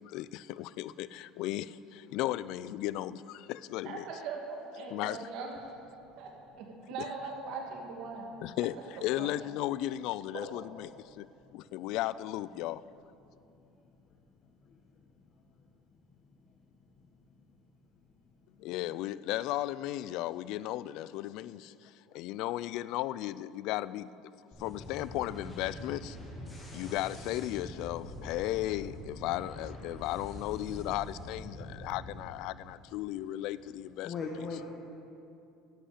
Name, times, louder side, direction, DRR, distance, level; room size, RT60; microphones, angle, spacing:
voice 1, 0.0-4.1 4.9-5.3 8.4-11.3 11.5-12.8 18.6-24.1 24.6-26.2 26.7-34.1, left 15 dB, 65° left, 18 dB, 0.3 m, -35 dB
voice 2, 3.8-4.4 4.7-5.5 6.2-8.3 9.2-9.3, right 4 dB, 60° right, 1 dB, 2.4 m, -40 dB
voice 3, 14.6-15.0 15.6-15.7 16.2-16.5 17.4-17.5 34.0-34.7, left 4 dB, 35° left, 0 dB, 1.2 m, -41 dB
sound 1, 24.5-32.1, left 1 dB, 20° left, 2.7 m, -44 dB
11.5 x 8.4 x 8.3 m, 2.7 s
cardioid pair, 135°, 0 cm